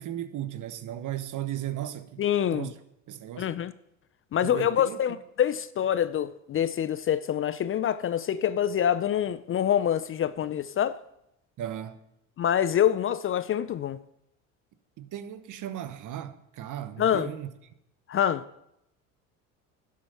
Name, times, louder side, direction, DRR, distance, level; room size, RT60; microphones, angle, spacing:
voice 1, 0.0-2.2 2.5-2.7 3.1-3.5 4.4-5.0 11.6-12.0 15.0-17.5, right 11 dB, 50° right, 1.0 m, -36 dB
voice 2, 2.2-2.7 3.4-3.7 4.3-11.0 12.4-14.0 17.0-17.3 18.1-18.4, left 10 dB, 35° left, 0.5 m, -26 dB
11.0 x 7.6 x 5.6 m
hypercardioid pair, 75°, 41 cm